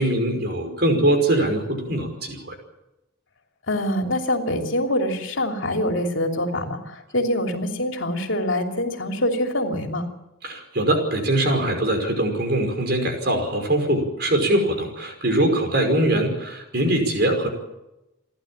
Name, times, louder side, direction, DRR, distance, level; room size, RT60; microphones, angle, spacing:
voice 1, 0.0-2.5 10.4-17.5, right 1 dB, 50° right, 5 dB, 5.4 m, -22 dB
voice 2, 3.7-10.1, left 1 dB, 75° left, 3 dB, 3.0 m, -25 dB
29.5 x 11.5 x 8.8 m, 0.93 s
head